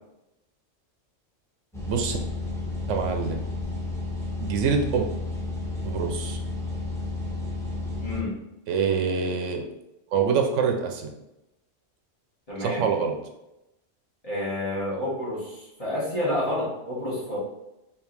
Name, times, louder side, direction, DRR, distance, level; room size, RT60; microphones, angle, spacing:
sound 1, 1.7-8.2, left 2 dB, 5° left, 0.9 m, -32 dB
voice 1, 1.9-2.2 2.9-3.4 4.4-5.1 5.8-6.4 8.7-9.6 10.1-11.1 12.6-13.2, right 6 dB, 80° right, 4 dB, 0.9 m, -25 dB
voice 2, 8.0-8.3 12.5-12.8 14.2-17.4, left 1 dB, 30° left, -8 dB, 1.7 m, -29 dB
5.1 x 2.9 x 3.3 m, 0.91 s
omnidirectional pair, 1.3 m